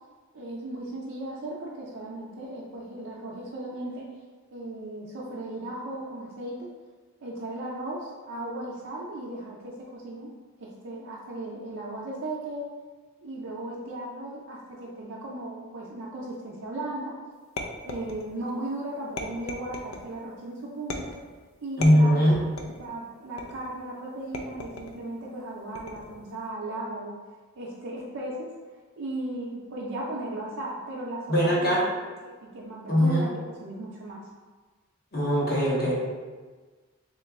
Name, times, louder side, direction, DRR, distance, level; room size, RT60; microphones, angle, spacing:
voice 1, 0.3-4.1 4.5-6.7 7.2-10.3 10.6-12.6 13.2-17.1 17.8-21.2 21.6-22.1 22.8-27.1 27.6-28.5 29.0-31.7 32.2-33.3 33.6-34.2, right 1 dB, 75° right, -6 dB, 0.5 m, -36 dB
sound 1, 17.6-18.5 19.2-20.1 20.9-21.3 21.8-22.9 23.4-23.8 24.3-25.0 25.7-26.2, left 2 dB, 80° left, 0.4 m, -37 dB
voice 2, 21.8-22.4 31.3-31.8 32.9-33.3 35.1-35.9, equal, 50° left, -7 dB, 1.0 m, -21 dB
3.1 x 2.9 x 3.5 m, 1.4 s
head